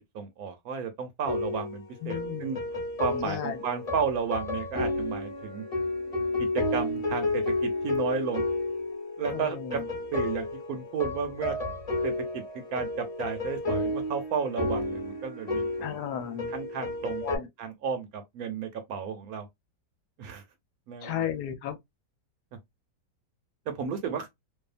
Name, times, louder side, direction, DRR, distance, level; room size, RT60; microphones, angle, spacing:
voice 1, 0.1-2.6 3.0-5.6 6.4-8.4 9.2-9.8 10.1-11.5 12.0-12.4 12.7-15.6 16.5-17.2 17.6-19.4 20.2-20.4 20.9-21.2 23.8-24.3, right 6 dB, 70° right, 1.0 m, -33 dB
sound 1, 1.3-17.4, left 2 dB, 30° left, 0.9 m, -32 dB
voice 2, 2.0-2.6 3.2-3.6 9.3-9.9 15.8-16.5 17.2-17.5 21.0-21.8, left 10 dB, 75° left, 1.1 m, -34 dB
2.7 x 2.3 x 2.4 m
omnidirectional pair, 1.8 m